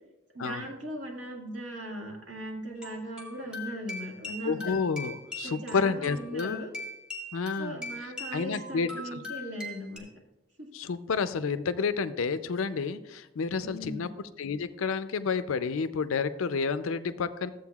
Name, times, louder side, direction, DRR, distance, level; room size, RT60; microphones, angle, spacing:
voice 1, 0.3-4.7 5.4-6.7 7.6-10.1 10.6-10.7 13.6-14.1, equal, 65° right, -1 dB, 2.0 m, -38 dB
sound 1, 2.8-10.0, left 2 dB, 5° right, 1.2 m, -41 dB
voice 2, 4.4-6.6 7.3-7.8 8.3-9.2 10.7-14.1 14.4-17.5, left 5 dB, 85° left, 12 dB, 0.5 m, -30 dB
13.5 x 7.8 x 2.3 m, 0.99 s
head